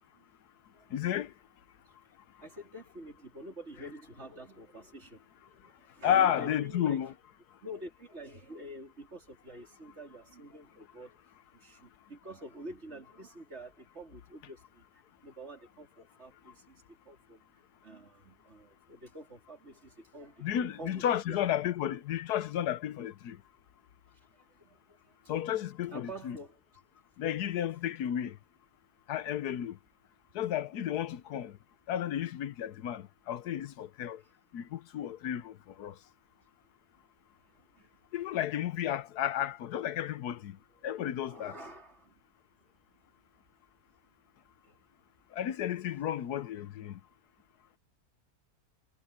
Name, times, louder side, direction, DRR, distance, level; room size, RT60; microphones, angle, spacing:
voice 1, 0.9-1.3 6.0-7.1 20.4-23.4 25.3-26.4 27.2-28.4 29.1-29.8 30.3-31.6 31.9-34.2 34.5-35.9 38.1-40.6 40.8-41.5 45.3-47.0, left 10 dB, 80° left, 1.4 m, -32 dB
voice 2, 2.4-7.0 7.6-14.8 15.2-17.4 17.8-21.4 24.3-25.4 25.9-26.6 31.3-31.4 37.5-37.9 41.2-42.2 44.6-44.8, right 1 dB, 45° right, 4.5 m, -48 dB
omnidirectional pair, 1.7 m